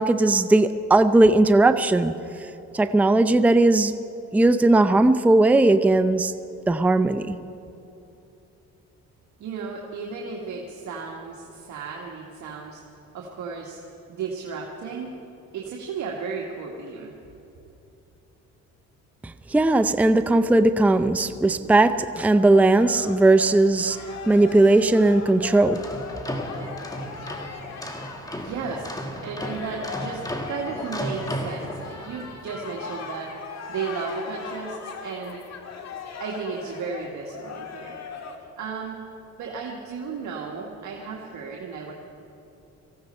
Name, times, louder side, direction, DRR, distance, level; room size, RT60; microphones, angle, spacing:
voice 1, 0.0-2.1 2.7-3.9 4.3-6.3 6.7-7.4 19.5-24.0 24.3-25.8, right 2 dB, 5° right, 10 dB, 0.5 m, -18 dB
voice 2, 9.4-12.8 13.1-13.8 14.1-15.1 15.5-17.1 28.4-28.9 29.2-33.4 33.7-35.4 36.2-38.0 38.6-39.0 39.4-41.9, right 5 dB, 70° right, -1 dB, 1.6 m, -34 dB
sound 1, 22.8-28.8 29.1-38.4, left 5 dB, 60° left, 1.9 m, -39 dB
sound 2, 25.6-32.3, equal, 10° left, 1.8 m, -34 dB
18.5 x 15.0 x 4.4 m, 3.0 s
cardioid pair, 90°, 30 cm